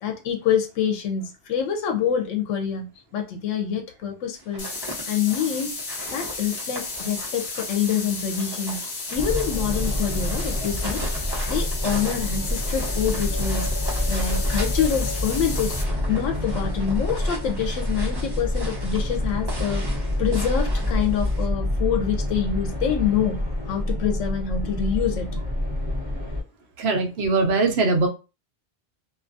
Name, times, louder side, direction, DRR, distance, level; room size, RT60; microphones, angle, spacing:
voice 1, 0.0-4.7 5.1-5.8 6.1-8.8 9.1-13.7 14.1-15.8 16.1-25.3 26.9-27.0, left 8 dB, 85° left, 0.9 m, -26 dB
sound 1, 4.4-21.5, right 1 dB, 25° right, 0.8 m, -39 dB
sound 2, 4.6-15.8, left 3 dB, 55° left, 0.8 m, -33 dB
sound 3, 9.2-26.4, left 1 dB, 10° right, 1.4 m, -27 dB
voice 2, 26.8-28.1, right 3 dB, 65° right, 0.9 m, -21 dB
2.5 x 2.3 x 2.5 m
omnidirectional pair, 1.2 m